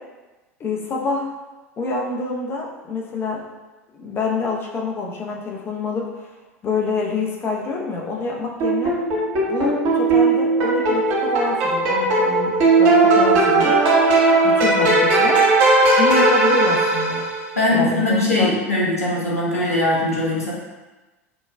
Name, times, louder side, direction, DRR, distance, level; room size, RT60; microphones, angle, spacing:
voice 1, 0.6-1.3 1.8-3.4 3.9-6.3 6.6-8.9 9.5-13.8 14.4-15.4 16.0-17.2 17.7-18.6, left 3 dB, 30° left, -1 dB, 0.7 m, -26 dB
sound 1, 8.6-17.5, right 2 dB, 55° right, 1.1 m, -17 dB
voice 2, 17.6-20.5, left 1 dB, 85° left, -5 dB, 0.8 m, -20 dB
5.3 x 2.3 x 2.2 m, 1.2 s
figure-of-eight pair, 80°, 8 cm